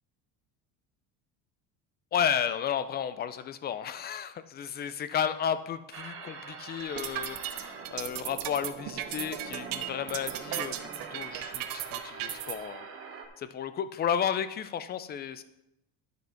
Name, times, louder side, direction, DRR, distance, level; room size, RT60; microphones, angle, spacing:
voice 1, 2.1-7.6 7.9-12.8 13.4-15.4, left 8 dB, 25° left, 13 dB, 0.3 m, -33 dB
sound 1, 5.9-13.3, right 5 dB, 30° right, 1.1 m, -43 dB
sound 2, 6.8-12.5, right 12 dB, 60° right, 0.8 m, -35 dB
10.5 x 5.2 x 5.7 m, 0.85 s
cardioid pair, 160°, 40 cm